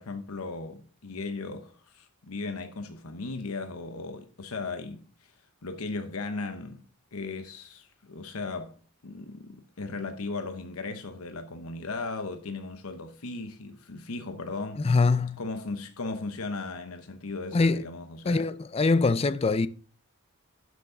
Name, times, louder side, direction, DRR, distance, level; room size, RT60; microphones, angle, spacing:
voice 1, 0.0-5.3 5.6-8.7 9.0-14.9 15.4-18.5, left 3 dB, 80° left, 0.9 m, -37 dB
voice 2, 14.8-15.4 17.5-17.8 18.2-19.7, left 3 dB, 25° left, 0.4 m, -23 dB
12.0 x 6.1 x 3.9 m
head